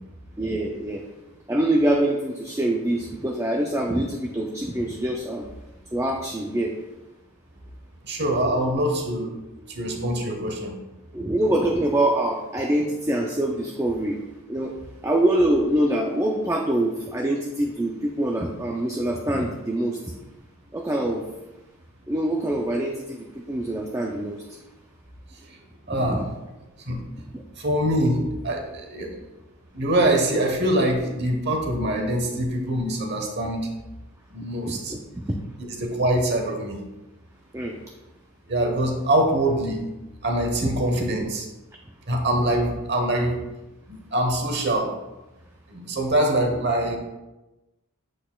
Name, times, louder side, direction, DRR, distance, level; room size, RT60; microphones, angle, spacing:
voice 1, 0.4-1.0 1.5-5.5 5.9-6.7 11.1-14.2 14.5-14.8 15.0-20.1 20.7-21.2 22.1-24.4 26.0-26.2 27.3-27.4 34.7-35.4 37.5-37.8, right 1 dB, 15° right, 1 dB, 0.4 m, -25 dB
voice 2, 8.0-9.3 9.7-10.7 25.5-25.6 25.9-26.2 26.9-27.1 27.6-29.2 29.7-33.7 34.3-34.9 35.8-36.8 38.5-39.8 40.2-41.4 42.1-43.4 43.9-44.9 45.7-47.0, right 1 dB, 50° right, 3 dB, 1.1 m, -24 dB
7.9 x 6.3 x 2.3 m, 1.0 s
head